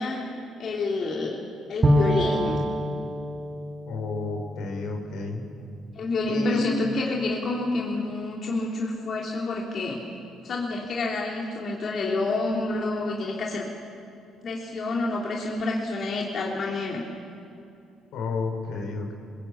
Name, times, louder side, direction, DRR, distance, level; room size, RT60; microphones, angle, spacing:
voice 1, 0.0-1.4 1.7-2.6 5.9-10.0 10.4-13.7 14.4-17.0, left 2 dB, 55° left, -2 dB, 3.3 m, -28 dB
Bowed string instrument, 1.8-5.6, equal, 35° right, 1.9 m, -27 dB
voice 2, 3.9-5.4 6.3-6.6 18.1-19.1, left 3 dB, 70° left, 3 dB, 4.3 m, -31 dB
22.0 x 21.5 x 8.6 m, 2.6 s
hypercardioid pair, 60°, 0 cm